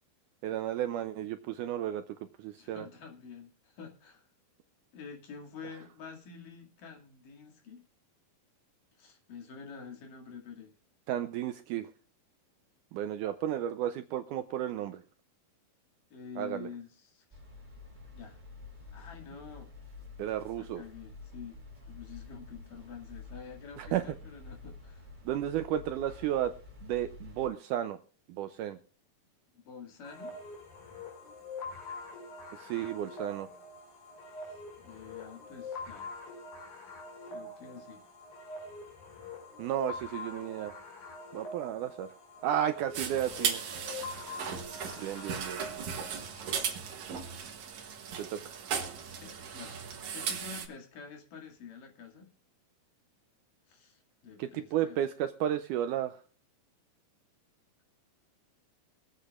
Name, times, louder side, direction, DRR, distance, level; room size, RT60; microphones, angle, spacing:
voice 1, 0.4-2.0 2.4-2.9 11.1-11.9 12.9-15.0 16.4-16.7 20.2-20.8 23.8-24.0 25.3-26.5 26.8-28.0 28.3-28.8 32.6-33.5 39.6-40.7 41.3-42.1 42.4-43.6 45.0-45.6 48.2-48.7 54.4-56.2, right 11 dB, 80° right, 10 dB, 1.9 m, -33 dB
voice 2, 2.6-4.3 4.9-7.8 9.0-10.7 16.1-17.4 18.1-18.4 18.9-19.7 20.6-25.1 25.6-25.8 29.5-30.4 34.5-36.1 37.3-38.1 49.1-49.9 50.1-52.3 53.7-55.0, left 6 dB, 65° left, 2 dB, 3.8 m, -48 dB
sound 1, 17.3-27.5, left 3 dB, 15° right, 2.7 m, -49 dB
sound 2, 30.0-46.6, left 3 dB, 80° left, 6.8 m, -45 dB
sound 3, 42.9-50.7, right 7 dB, 60° right, 2.6 m, -37 dB
24.0 x 8.3 x 2.4 m, 0.39 s
omnidirectional pair, 4.1 m